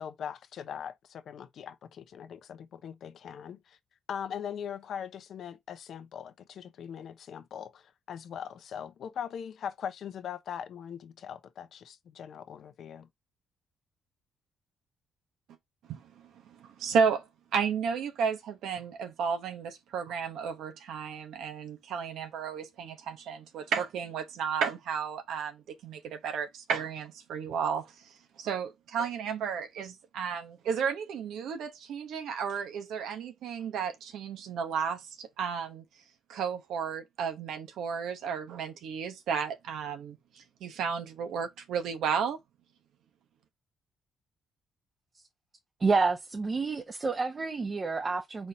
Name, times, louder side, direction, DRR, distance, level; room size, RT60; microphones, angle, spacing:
voice 1, 0.0-3.8 4.1-13.1, left 8 dB, 65° left, 0.9 m, -41 dB
voice 2, 16.5-17.3 17.5-35.8 36.3-42.4, right 6 dB, 80° right, 0.9 m, -33 dB
voice 3, 45.8-48.5, right 4 dB, 30° right, 0.9 m, -29 dB
4.5 x 4.2 x 2.8 m
cardioid pair, 90°, 0 cm